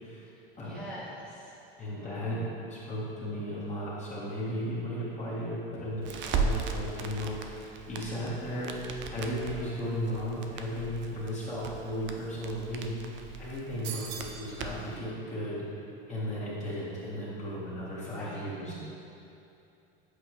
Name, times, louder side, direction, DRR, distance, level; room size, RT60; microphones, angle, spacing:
voice 1, 0.6-1.6 18.1-18.7, left 1 dB, 5° left, -9 dB, 1.4 m, -44 dB
voice 2, 1.8-2.4 2.7-8.8 9.1-15.6 16.1-18.7, equal, 25° left, -8 dB, 1.5 m, -35 dB
Crackle, 6.0-15.0, right 5 dB, 40° right, 0.5 m, -37 dB
sound 1, 13.8-14.5, right 7 dB, 90° right, 0.7 m, -39 dB
8.0 x 4.1 x 3.1 m, 2.8 s
hypercardioid pair, 100°, 30 cm